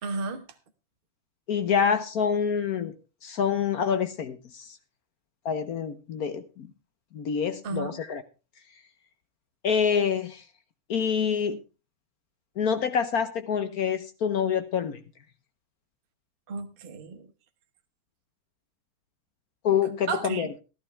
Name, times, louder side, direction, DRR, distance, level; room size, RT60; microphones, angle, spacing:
voice 1, 0.0-0.5 7.6-8.0 16.5-17.3 20.1-20.5, right 4 dB, 35° right, 5 dB, 1.0 m, -33 dB
voice 2, 1.5-2.9 3.2-4.8 5.4-6.7 7.1-8.2 9.6-10.4 10.9-11.6 12.6-15.0 19.6-20.5, left 7 dB, 60° left, 11 dB, 1.1 m, -26 dB
14.0 x 12.0 x 3.3 m, 0.31 s
omnidirectional pair, 2.3 m